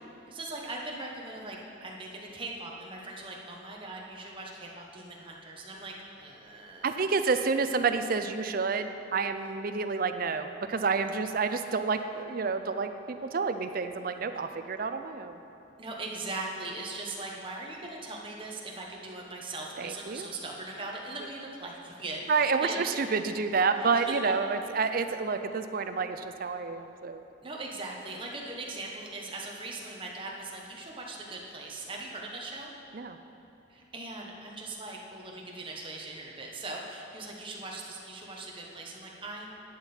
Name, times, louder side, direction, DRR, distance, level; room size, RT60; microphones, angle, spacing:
voice 1, 0.3-7.3 15.8-22.8 23.8-24.3 27.4-32.7 33.7-39.5, right 2 dB, 25° right, -1 dB, 1.2 m, -40 dB
voice 2, 6.8-15.4 19.8-20.3 22.3-27.2 32.9-33.2, right 4 dB, 45° right, 9 dB, 0.5 m, -29 dB
11.0 x 8.8 x 4.4 m, 2.8 s
head